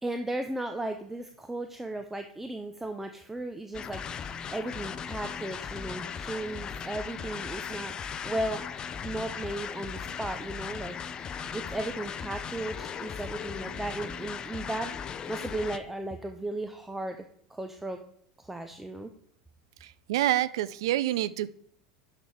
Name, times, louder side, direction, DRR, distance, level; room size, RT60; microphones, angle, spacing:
voice 1, 0.0-8.7 9.0-11.0 11.5-17.2 17.5-18.0 18.4-19.1, right 1 dB, 10° right, 6 dB, 0.7 m, -35 dB
sound 1, 3.7-15.8, left 7 dB, 30° left, 0.5 m, -38 dB
voice 2, 19.8-21.5, right 14 dB, 60° right, 17 dB, 0.4 m, -27 dB
11.0 x 5.7 x 3.4 m, 0.67 s
figure-of-eight pair, 80°, 3 cm